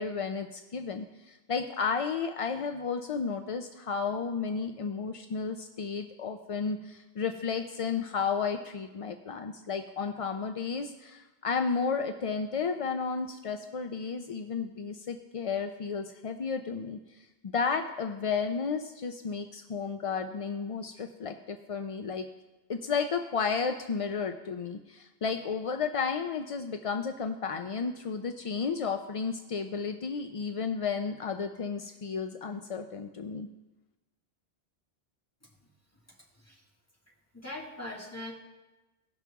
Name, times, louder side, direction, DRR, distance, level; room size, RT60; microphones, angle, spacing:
voice 1, 0.0-17.0 17.4-22.3 22.7-33.5, left 5 dB, 55° left, 6 dB, 0.4 m, -33 dB
voice 2, 36.3-36.6 37.3-38.3, left 1 dB, 15° left, -3 dB, 1.9 m, -41 dB
17.5 x 5.9 x 3.5 m, 1.1 s
omnidirectional pair, 1.1 m